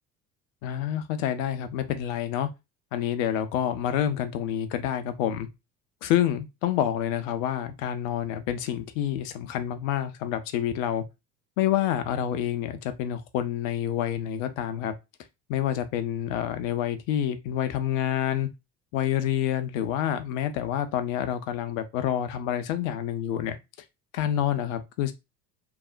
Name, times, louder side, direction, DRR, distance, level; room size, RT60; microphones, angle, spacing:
voice 1, 0.6-2.5 2.9-5.5 6.0-11.0 11.6-14.9 15.5-18.5 18.9-23.6 24.1-25.1, left 10 dB, 50° left, 0.6 m, -28 dB
3.0 x 2.0 x 2.5 m
figure-of-eight pair, 65°, 50 cm